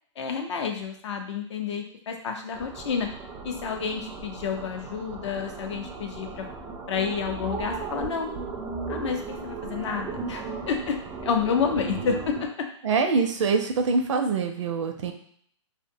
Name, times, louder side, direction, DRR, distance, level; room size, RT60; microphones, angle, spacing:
voice 1, 0.2-3.1 3.4-6.5 6.9-8.3 8.9-11.0 11.2-12.5, left 6 dB, 65° left, 4 dB, 0.5 m, -29 dB
sound 1, 2.5-12.5, right 4 dB, 15° right, 0.4 m, -36 dB
voice 2, 12.8-15.1, right 4 dB, 70° right, 6 dB, 0.5 m, -24 dB
2.6 x 2.1 x 2.6 m, 0.63 s
hypercardioid pair, 145°, 16 cm